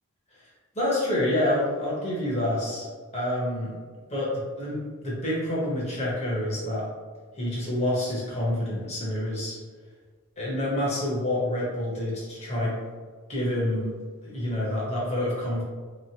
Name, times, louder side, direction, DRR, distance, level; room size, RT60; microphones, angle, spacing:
voice 1, 0.7-2.9 3.1-3.7 4.1-6.8 7.3-9.6 10.4-12.8 13.3-13.9 14.2-15.6, left 1 dB, 30° left, -6 dB, 1.2 m, -27 dB
4.2 x 3.1 x 2.9 m, 1.5 s
head